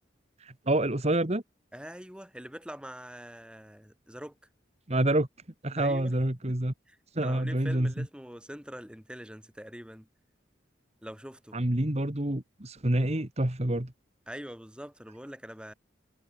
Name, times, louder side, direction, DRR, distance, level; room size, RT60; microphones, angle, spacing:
voice 1, 0.4-1.4 4.9-5.3 5.6-6.7 7.1-8.1 11.5-13.9, right 1 dB, 35° right, 1.8 m, -27 dB
voice 2, 1.7-4.4 5.7-6.1 6.9-10.1 11.0-11.6 14.3-15.7, equal, 5° right, 5.0 m, -44 dB
head